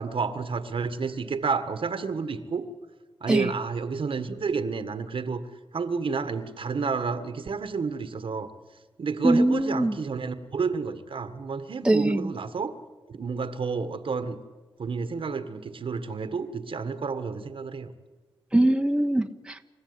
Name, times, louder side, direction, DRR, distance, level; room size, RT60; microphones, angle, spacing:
voice 1, 0.0-2.6 3.2-5.4 5.7-8.5 9.0-12.7 13.1-14.4 14.8-17.9, right 5 dB, 65° right, 10 dB, 1.6 m, -30 dB
voice 2, 9.2-9.9 11.8-12.3 18.5-19.6, right 1 dB, 10° right, 5 dB, 1.1 m, -22 dB
28.5 x 14.5 x 9.7 m, 1.3 s
cardioid pair, 70°, 10 cm